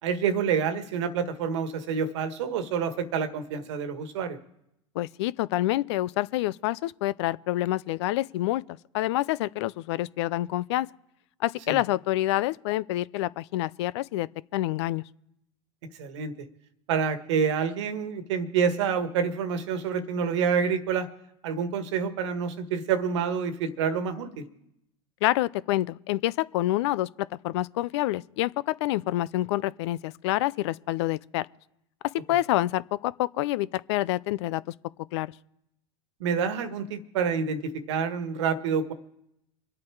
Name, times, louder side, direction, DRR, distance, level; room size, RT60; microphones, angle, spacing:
voice 1, 0.0-4.4 11.7-11.8 16.0-16.3 16.9-21.1 21.4-24.4 36.2-38.9, right 6 dB, 75° right, 1.5 m, -27 dB
voice 2, 4.9-8.6 8.9-10.9 11.4-14.3 14.5-15.0 25.2-31.5 32.3-34.6 35.1-35.3, left 16 dB, 70° left, 0.5 m, -27 dB
25.5 x 8.5 x 4.7 m
hypercardioid pair, 90°, 15 cm